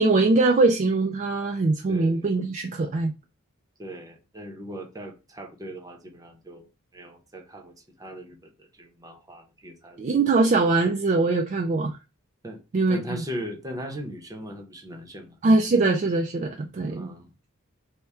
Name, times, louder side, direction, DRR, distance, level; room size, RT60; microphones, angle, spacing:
voice 1, 0.0-3.1 10.0-12.0 12.7-13.2 15.4-17.1, right 3 dB, 35° right, 0.3 m, -22 dB
voice 2, 1.9-2.2 3.8-6.7 6.9-10.2 12.4-12.6 12.9-15.4 16.9-17.3, equal, 15° right, 0.7 m, -39 dB
3.5 x 2.1 x 4.2 m
head